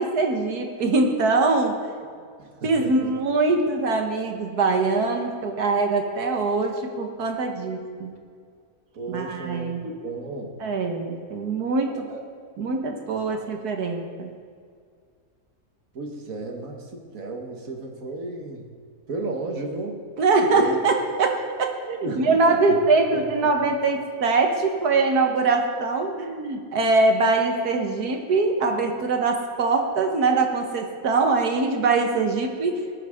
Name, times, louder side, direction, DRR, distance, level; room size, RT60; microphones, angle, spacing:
voice 1, 0.0-1.8 2.6-8.2 9.1-9.9 10.6-12.1 12.6-14.3 20.2-32.8, right 3 dB, 90° right, 4 dB, 1.8 m, -23 dB
voice 2, 2.4-3.1 8.9-10.5 11.9-12.2 13.3-13.5 15.9-18.7 19.1-20.0 20.5-20.8 22.0-22.8 23.1-23.7, right 2 dB, 65° right, 2 dB, 1.8 m, -34 dB
20.0 x 9.1 x 3.6 m, 2.1 s
omnidirectional pair, 1.6 m